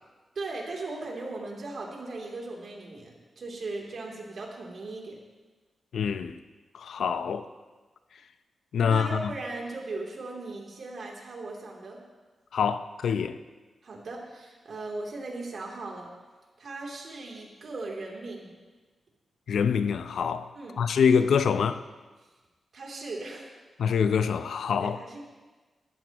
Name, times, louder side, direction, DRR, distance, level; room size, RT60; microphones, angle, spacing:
voice 1, 0.3-5.2 8.8-12.0 13.8-16.1 16.6-18.5 20.5-20.8 22.7-23.5 24.8-25.2, right 2 dB, 60° right, 3.1 m, -38 dB
voice 2, 5.9-6.4 6.7-7.5 8.7-9.3 12.5-13.4 19.5-20.5 20.8-21.8 23.8-25.0, left 6 dB, 90° left, 0.6 m, -25 dB
20.0 x 14.0 x 3.0 m
wide cardioid pair, 135°, 0 cm